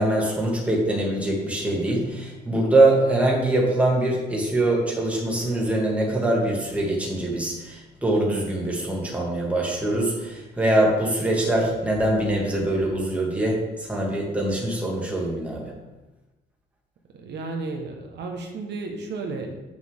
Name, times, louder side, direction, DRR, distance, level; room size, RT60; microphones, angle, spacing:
voice 1, 0.0-15.7, right 1 dB, 5° right, -3 dB, 2.1 m, -23 dB
voice 2, 17.1-19.6, right 3 dB, 65° right, 2 dB, 1.3 m, -33 dB
8.3 x 6.4 x 3.7 m, 1.1 s
cardioid pair, 110°, 19 cm